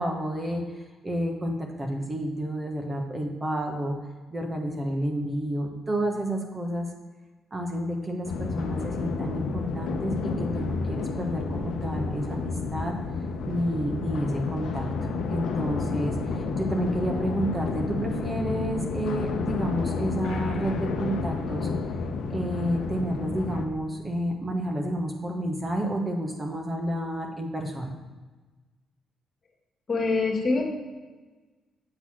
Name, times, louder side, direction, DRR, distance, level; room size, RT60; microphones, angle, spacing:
voice 1, 0.0-4.0 4.3-6.9 7.5-12.9 13.5-14.9 15.3-21.7 22.3-27.9, right 1 dB, 25° right, 2 dB, 1.2 m, -30 dB
sound 1, 8.2-23.6, left 4 dB, 75° left, 0.8 m, -30 dB
voice 2, 29.9-30.6, left 3 dB, 40° left, -1 dB, 1.7 m, -24 dB
7.8 x 4.1 x 6.2 m, 1.3 s
cardioid pair, 90°, 0 cm